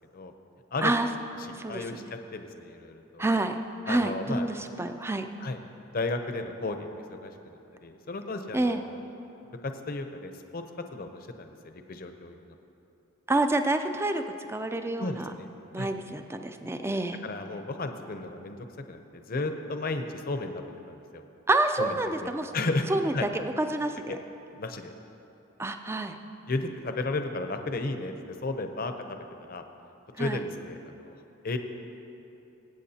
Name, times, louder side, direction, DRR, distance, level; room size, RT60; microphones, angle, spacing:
voice 1, 1.7-2.0 2.3-3.2 3.9-4.5 5.4-5.6 5.9-7.3 7.8-9.0 9.6-10.6 10.9-12.4 15.0-15.5 15.8-15.9 17.2-21.2 21.8-22.0 22.2-22.9 23.1-23.3 24.1-24.2 24.5-24.9 26.5-28.1 28.4-29.2 29.5-29.6 30.2-31.1 31.4-31.6, left 2 dB, 45° left, 6 dB, 0.7 m, -33 dB
voice 2, 3.2-3.6 3.9-5.3 8.5-8.8 13.3-14.2 14.5-15.3 15.7-17.2 21.5-22.5 22.9-24.2 25.6-26.2 30.2-30.4, right 2 dB, 10° right, 7 dB, 0.4 m, -28 dB
24.0 x 8.3 x 2.8 m, 2.9 s
head